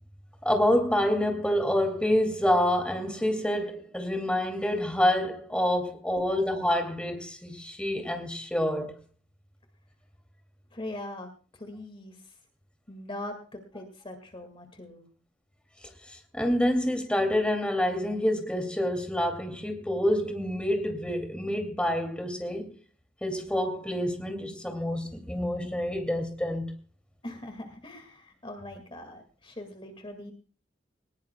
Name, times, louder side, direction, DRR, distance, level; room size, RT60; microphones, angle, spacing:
voice 1, 0.4-9.0 16.3-22.7 23.2-26.7, left 1 dB, 5° left, 2.4 m, -27 dB
voice 2, 10.7-11.3 11.6-12.2 12.9-15.1 27.2-30.3, left 1 dB, 30° left, 1.9 m, -41 dB
20.5 x 19.0 x 2.2 m
head